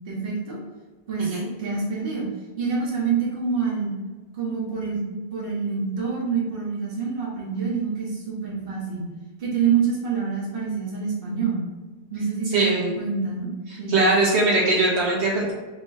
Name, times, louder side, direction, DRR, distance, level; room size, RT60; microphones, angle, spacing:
voice 1, 0.1-0.6 1.1-2.3 2.6-3.9 4.3-5.0 5.3-9.1 9.4-11.6 12.1-13.5 13.8-14.1, right 5 dB, 55° right, -6 dB, 1.4 m, -26 dB
voice 2, 12.5-12.9 13.9-15.5, right 2 dB, 80° right, -6 dB, 1.5 m, -21 dB
4.9 x 2.9 x 3.5 m, 1.3 s
omnidirectional pair, 1.1 m